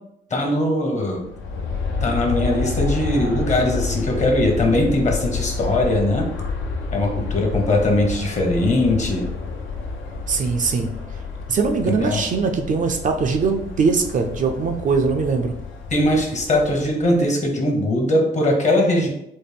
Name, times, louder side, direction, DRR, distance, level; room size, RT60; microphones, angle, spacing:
voice 1, 0.3-1.2 2.0-6.2 6.9-9.2 11.8-12.2 15.9-19.1, left 1 dB, 35° left, 1 dB, 0.9 m, -20 dB
Aircraft, 1.2-17.2, left 4 dB, 75° left, 0.7 m, -29 dB
voice 2, 10.3-10.9 11.5-15.5, right 4 dB, 40° right, 4 dB, 0.4 m, -21 dB
4.1 x 2.1 x 3.4 m, 0.80 s
cardioid pair, 90°, 20 cm